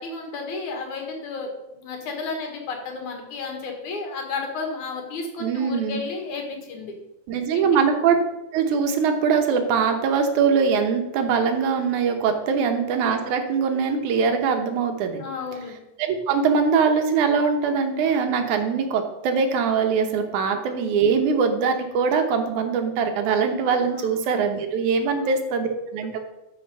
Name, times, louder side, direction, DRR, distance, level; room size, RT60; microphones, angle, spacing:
voice 1, 0.0-6.9 7.5-7.8 12.5-12.7 15.2-15.8 20.4-20.5 23.9-24.1, left 4 dB, 85° left, 2 dB, 3.1 m, -32 dB
voice 2, 5.4-6.0 7.3-8.2 8.5-15.2 16.0-26.2, right 5 dB, 90° right, 6 dB, 2.5 m, -22 dB
12.0 x 4.9 x 5.5 m, 0.98 s
omnidirectional pair, 3.3 m